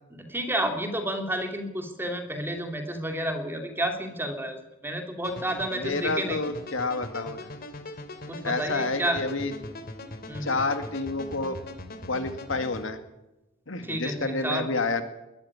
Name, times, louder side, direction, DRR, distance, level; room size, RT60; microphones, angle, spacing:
voice 1, 0.1-6.4 8.3-9.3 10.3-10.5 13.8-14.6, right 1 dB, 10° right, 5 dB, 2.7 m, -30 dB
sound 1, 5.2-12.9, left 1 dB, 50° left, 2.7 m, -41 dB
voice 2, 5.8-7.5 8.4-9.5 10.4-11.6 12.1-13.0 13.7-15.0, left 3 dB, 70° left, 8 dB, 2.2 m, -29 dB
20.5 x 13.5 x 9.9 m, 0.96 s
head